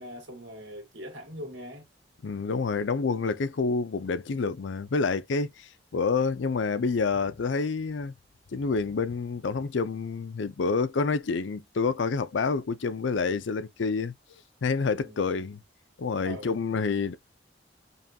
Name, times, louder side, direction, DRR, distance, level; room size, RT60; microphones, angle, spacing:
voice 1, 0.0-1.9 15.0-15.5 16.2-16.5, equal, 80° right, 1.9 m, -42 dB
voice 2, 2.2-8.1 8.5-15.6 16.0-17.1, left 4 dB, 70° left, 0.5 m, -28 dB
5.4 x 2.3 x 2.7 m
head